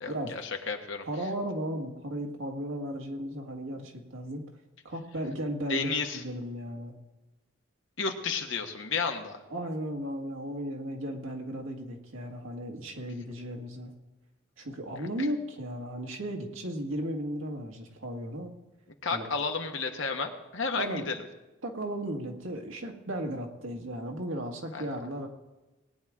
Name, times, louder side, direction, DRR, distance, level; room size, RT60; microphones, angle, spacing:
voice 1, 0.0-1.0 5.7-6.2 8.0-9.4 19.0-21.2 24.7-24.8, left 4 dB, 70° left, 4 dB, 1.3 m, -32 dB
voice 2, 1.1-4.4 4.8-7.0 9.5-13.9 14.6-18.5 19.1-19.4 20.8-21.1 21.6-25.3, equal, 85° right, 2 dB, 1.8 m, -35 dB
19.0 x 9.4 x 3.7 m, 1.1 s
head